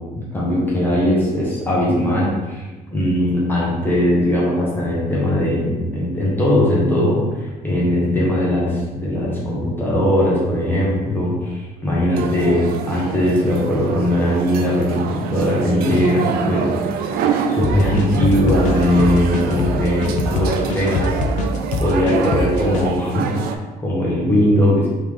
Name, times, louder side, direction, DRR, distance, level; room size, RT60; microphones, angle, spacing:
voice 1, 0.1-2.7 2.9-16.7 17.5-21.2 21.8-24.9, left 1 dB, 15° left, -6 dB, 1.0 m, -19 dB
sound 1, 12.1-23.6, right 6 dB, 75° right, 0.4 m, -26 dB
sound 2, 17.6-22.9, left 3 dB, 50° left, 0.4 m, -23 dB
3.6 x 3.1 x 3.3 m, 1.2 s
cardioid pair, 170°, 16 cm